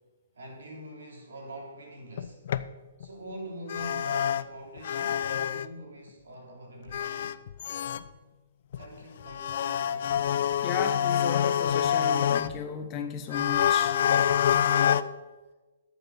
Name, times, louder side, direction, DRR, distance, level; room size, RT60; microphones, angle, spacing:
voice 1, 0.3-2.4 3.0-7.4 8.8-10.2, right 1 dB, 80° right, 0 dB, 3.5 m, -44 dB
sound 1, 2.2-2.6 3.0-3.1 3.7-4.4 4.8-5.7 6.9-8.0 8.7-8.8 9.2-12.7 13.3-15.0, left 9 dB, 55° left, 0.4 m, -26 dB
voice 2, 10.6-14.0, left 6 dB, 20° left, 6 dB, 0.9 m, -34 dB
12.0 x 6.7 x 5.0 m, 1.2 s
hypercardioid pair, 160°, 0 cm